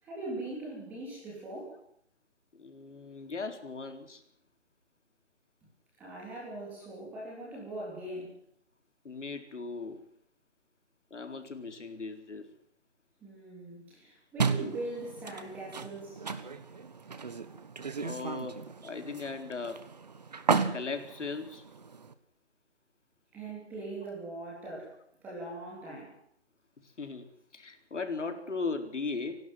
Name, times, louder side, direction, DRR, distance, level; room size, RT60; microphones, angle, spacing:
voice 1, 0.0-1.8 6.0-8.4 13.2-16.2 23.3-26.2, right 2 dB, 5° right, -4 dB, 3.2 m, -41 dB
voice 2, 2.5-4.2 9.0-10.0 11.1-12.5 17.9-18.6 18.8-19.8 20.7-21.6 27.0-29.4, left 4 dB, 85° left, 7 dB, 4.2 m, -38 dB
sound 1, 14.4-22.1, right 5 dB, 35° right, 1.3 m, -35 dB
28.0 x 12.0 x 7.8 m, 0.68 s
hypercardioid pair, 175°, 35 cm